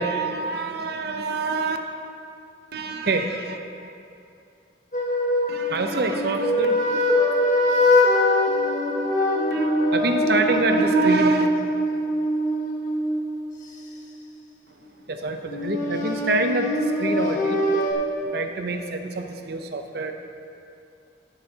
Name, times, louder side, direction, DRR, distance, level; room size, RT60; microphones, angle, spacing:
voice 1, 0.0-1.8 2.7-3.6 5.5-7.0 9.5-11.5 15.1-17.6 18.3-20.1, right 3 dB, 60° right, 5 dB, 0.8 m, -26 dB
sound 1, 4.9-14.0 15.5-17.9, left 1 dB, 45° left, 1.5 m, -23 dB
17.0 x 7.9 x 2.9 m, 2.5 s
head